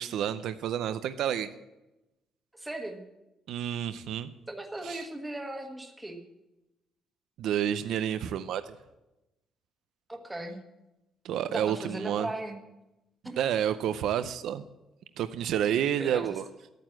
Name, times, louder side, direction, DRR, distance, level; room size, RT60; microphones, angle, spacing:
voice 1, 0.0-1.5 3.5-4.3 4.8-5.1 7.4-8.8 11.2-12.3 13.4-14.6 15.2-16.5, right 10 dB, 65° right, 11 dB, 0.6 m, -29 dB
voice 2, 2.5-3.0 4.5-6.2 10.1-10.6 11.5-12.6 13.2-13.4 15.6-15.7 16.0-16.3, right 1 dB, 10° right, 3 dB, 1.3 m, -37 dB
13.5 x 9.2 x 7.6 m, 0.97 s
cardioid pair, 180°, 0 cm